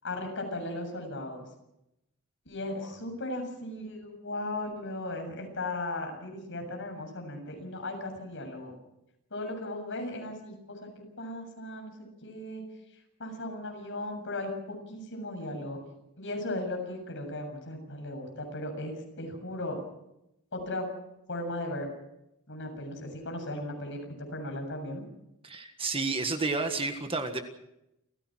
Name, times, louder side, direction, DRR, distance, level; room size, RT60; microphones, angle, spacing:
voice 1, 0.0-1.4 2.5-8.7 9.3-10.9 11.2-11.9 12.2-12.6 13.2-15.8 16.2-19.8 20.5-20.9 21.3-21.9 22.5-25.0, left 1 dB, 55° left, 3 dB, 7.5 m, -36 dB
voice 2, 25.4-27.4, right 3 dB, 25° right, 6 dB, 1.6 m, -30 dB
29.0 x 16.5 x 6.3 m, 0.86 s
head